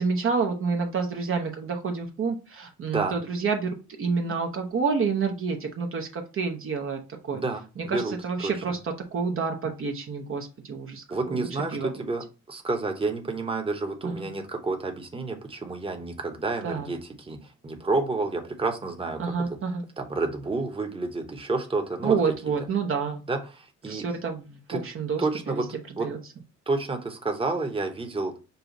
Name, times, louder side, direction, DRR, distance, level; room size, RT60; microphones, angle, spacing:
voice 1, 0.0-3.7 4.0-7.0 7.3-7.4 7.8-11.9 14.0-14.3 16.6-16.9 19.2-19.8 22.0-23.2 23.9-25.6 26.0-26.2, right 5 dB, 45° right, 3 dB, 0.8 m, -29 dB
voice 2, 7.3-8.1 8.4-8.5 11.1-17.4 17.6-19.6 20.0-22.3 23.3-24.0 24.7-24.8 25.2-25.6 26.0-26.1 26.7-28.3, right 3 dB, 20° right, 3 dB, 1.0 m, -29 dB
5.5 x 2.3 x 4.0 m, 0.31 s
cardioid pair, 90°, 30 cm